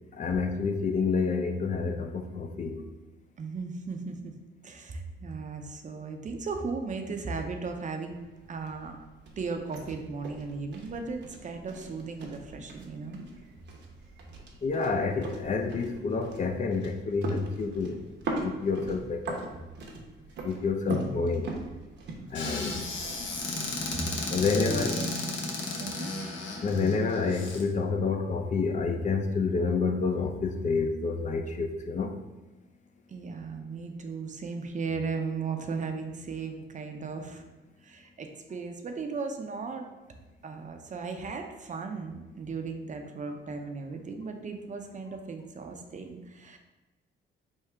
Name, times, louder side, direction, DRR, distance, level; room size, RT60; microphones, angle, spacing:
voice 1, 0.2-2.8 14.6-18.0 18.4-19.4 20.4-21.5 22.3-22.7 24.3-24.9 26.6-32.1, left 4 dB, 40° left, 5 dB, 0.4 m, -28 dB
voice 2, 3.4-4.3 4.6-8.2 8.5-9.0 9.4-13.2 22.4-23.3 23.9-25.2 25.8-26.1 33.1-37.4 37.8-39.9 40.4-46.6, right 4 dB, 40° right, 5 dB, 0.5 m, -36 dB
sound 1, 8.1-25.1, right 2 dB, 60° right, 0.8 m, -41 dB
Squeak / Cupboard open or close, 22.3-27.6, left 3 dB, 70° left, 0.8 m, -34 dB
3.6 x 2.7 x 4.4 m, 1.1 s
cardioid pair, 90°, 20 cm